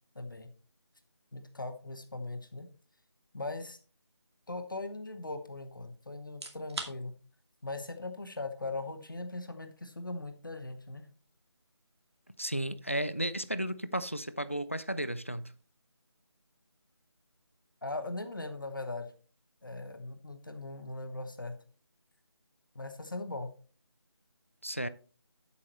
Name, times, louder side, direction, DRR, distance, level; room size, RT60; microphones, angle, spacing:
voice 1, 0.1-0.5 1.3-2.7 3.3-3.8 4.5-7.2 7.6-11.1 17.8-19.1 19.6-21.6 22.7-23.5, left 2 dB, 45° left, 1.1 m, -39 dB
sound 1, 6.2-21.1, right 2 dB, 65° right, 2.3 m, -53 dB
voice 2, 12.4-15.5 24.6-24.9, right 1 dB, 30° left, 0.4 m, -34 dB
11.0 x 8.5 x 3.0 m
figure-of-eight pair, 180°, 15 cm